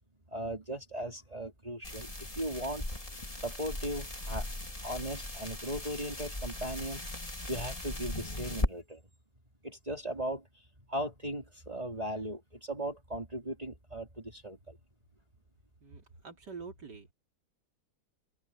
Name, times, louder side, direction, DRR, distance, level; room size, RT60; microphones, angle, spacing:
voice 1, 0.3-2.9 3.3-4.5 4.8-7.1 7.5-9.0 9.6-10.4 10.9-14.8, right 1 dB, 20° right, 3.4 m, -37 dB
sound 1, 1.8-8.7, left 1 dB, 20° left, 3.4 m, -38 dB
voice 2, 15.8-17.1, right 5 dB, 90° right, 3.8 m, -46 dB
omnidirectional pair, 1.8 m